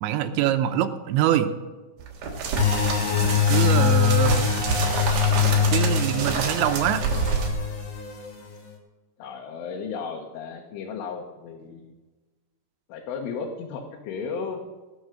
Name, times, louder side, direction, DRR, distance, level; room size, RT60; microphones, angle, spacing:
voice 1, 0.0-1.5 3.5-4.5 5.7-7.0, right 11 dB, 80° right, 8 dB, 2.9 m, -24 dB
sound 1, 2.0-7.5, right 5 dB, 55° right, 2.9 m, -28 dB
sound 2, 2.6-8.5, left 7 dB, 50° left, 2.2 m, -23 dB
voice 2, 9.2-11.9 12.9-14.6, left 5 dB, 90° left, 0 dB, 3.7 m, -35 dB
18.0 x 7.1 x 6.4 m, 1.2 s
omnidirectional pair, 5.5 m